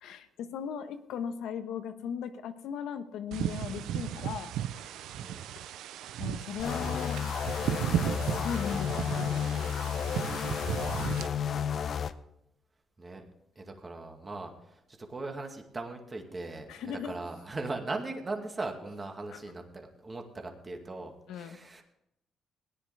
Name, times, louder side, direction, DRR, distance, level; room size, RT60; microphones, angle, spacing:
voice 1, 0.0-4.5 5.6-5.7 6.2-7.2 8.2-9.7 16.7-17.1 19.3-19.4 21.3-21.6, left 8 dB, 85° left, 8 dB, 1.2 m, -38 dB
sound 1, 3.3-11.3, right 11 dB, 90° right, 0.5 m, -35 dB
voice 2, 5.2-5.5 6.4-6.5 10.5-11.8 13.0-13.2 13.6-21.8, right 2 dB, 30° right, 3 dB, 2.1 m, -40 dB
sound 2, 6.6-12.1, left 7 dB, 55° left, 0.7 m, -32 dB
17.5 x 10.5 x 3.4 m, 0.81 s
cardioid pair, 90°, 0 cm